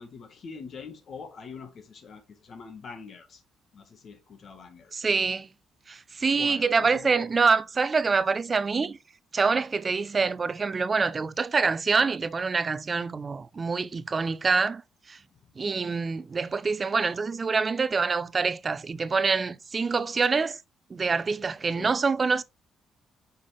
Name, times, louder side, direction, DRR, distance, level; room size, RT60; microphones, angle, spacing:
voice 1, 0.0-3.4 3.7-5.1 6.3-7.3 15.3-15.5 21.8-22.0, left 5 dB, 55° left, 1.6 m, -44 dB
voice 2, 4.9-5.5 5.9-9.0 9.3-14.8 15.1-15.2 15.6-20.6 20.9-22.4, right 4 dB, 35° right, 0.3 m, -26 dB
5.5 x 4.9 x 3.5 m
cardioid pair, 90°, 0 cm